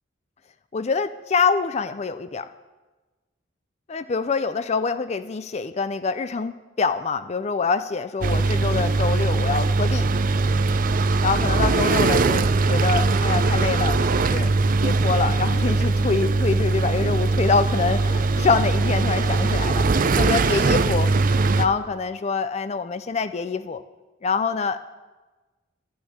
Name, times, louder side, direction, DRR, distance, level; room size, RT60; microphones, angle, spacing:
voice 1, 0.7-2.5 3.9-10.1 11.2-19.8 20.2-21.1 21.6-23.8 24.2-24.8, left 4 dB, 35° left, 11 dB, 0.4 m, -25 dB
sound 1, 8.2-21.7, right 3 dB, 45° right, 0.5 m, -21 dB
12.0 x 6.3 x 9.4 m, 1.2 s
head